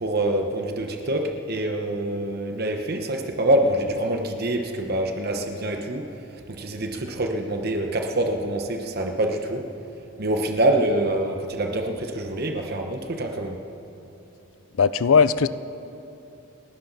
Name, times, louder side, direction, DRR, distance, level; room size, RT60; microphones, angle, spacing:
voice 1, 0.0-6.1 6.5-9.7 10.2-13.6, right 1 dB, 45° right, 3 dB, 1.0 m, -25 dB
voice 2, 14.8-15.5, left 5 dB, 70° left, 15 dB, 0.5 m, -18 dB
29.0 x 12.0 x 4.1 m, 2.9 s
head